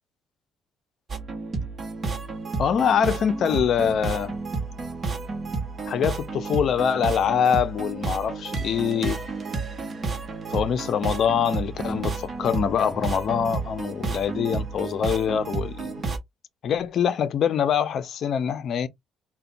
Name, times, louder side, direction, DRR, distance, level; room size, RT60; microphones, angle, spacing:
sound 1, 1.1-16.2, right 4 dB, 30° right, 0.9 m, -31 dB
voice 1, 2.6-4.3 5.9-9.2 10.5-15.9 16.6-18.9, left 8 dB, 55° left, 0.5 m, -24 dB
3.9 x 2.2 x 2.5 m
cardioid pair, 125°, 0 cm